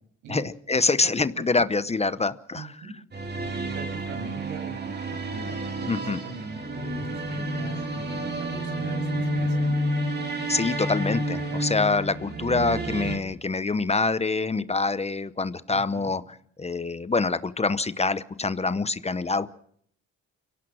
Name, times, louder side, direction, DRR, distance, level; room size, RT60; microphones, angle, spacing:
voice 1, 0.3-2.9 5.9-6.2 10.5-19.5, left 3 dB, 20° left, 14 dB, 0.8 m, -26 dB
voice 2, 2.5-2.9 3.6-9.7 15.7-16.1, right 3 dB, 90° right, 4 dB, 7.8 m, -41 dB
sound 1, 3.1-13.2, right 1 dB, 35° right, 3.6 m, -30 dB
24.5 x 17.5 x 6.3 m, 0.66 s
cardioid pair, 90°, 30 cm